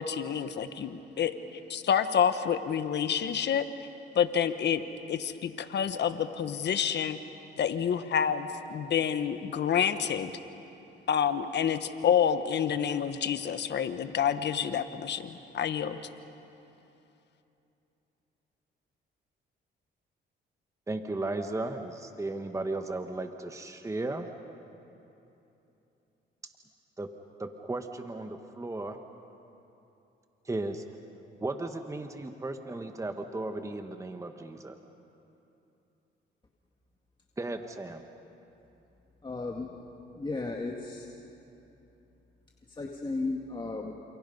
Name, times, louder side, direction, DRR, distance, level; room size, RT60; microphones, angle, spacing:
voice 1, 0.0-1.3 1.7-3.6 4.1-4.8 5.1-7.2 7.6-10.3 11.1-16.0, left 8 dB, 60° left, 10 dB, 1.3 m, -28 dB
voice 2, 20.9-24.3 27.0-27.1 27.4-29.0 30.4-30.8 31.4-34.8 37.4-38.0, right 2 dB, 15° right, 6 dB, 1.3 m, -35 dB
voice 3, 39.2-39.8 40.1-41.1 42.7-44.0, left 3 dB, 25° left, 0 dB, 2.0 m, -35 dB
29.0 x 28.0 x 5.5 m, 2.9 s
cardioid pair, 90°, 20 cm